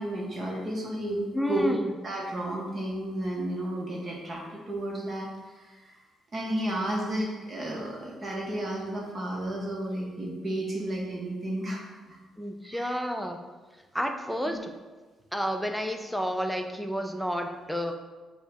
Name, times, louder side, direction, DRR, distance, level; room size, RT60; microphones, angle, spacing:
voice 1, 0.0-1.7 2.0-6.0 6.3-11.8 12.1-12.2 12.7-13.0 14.5-14.6, right 1 dB, 40° right, -2 dB, 0.8 m, -32 dB
voice 2, 1.3-1.9 12.4-13.4 13.9-14.7 15.3-17.9, equal, ahead, 4 dB, 0.4 m, -30 dB
5.3 x 2.1 x 4.7 m, 1.3 s
cardioid pair, 90°, 0 cm